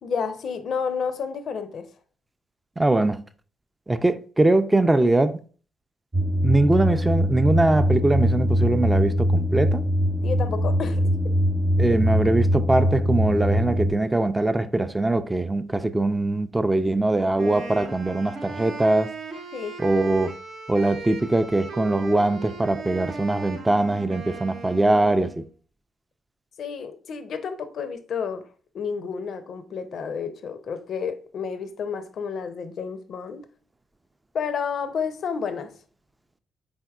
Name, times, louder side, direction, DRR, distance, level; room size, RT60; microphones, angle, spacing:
voice 1, 0.0-1.8 10.2-11.1 19.5-19.8 26.6-28.4 28.7-33.5 34.3-35.7, left 6 dB, 60° left, 0.4 m, -30 dB
voice 2, 2.8-3.2 3.9-5.4 6.4-9.8 11.8-19.1 19.8-20.3 20.7-25.4, right 2 dB, 20° right, 0.3 m, -22 dB
sound 1, 6.1-13.9, equal, 35° right, 0.8 m, -22 dB
Wind instrument woodwind instrument, 17.4-25.5, right 4 dB, 65° right, 0.7 m, -37 dB
4.0 x 3.5 x 2.3 m
hypercardioid pair, 50°, 0 cm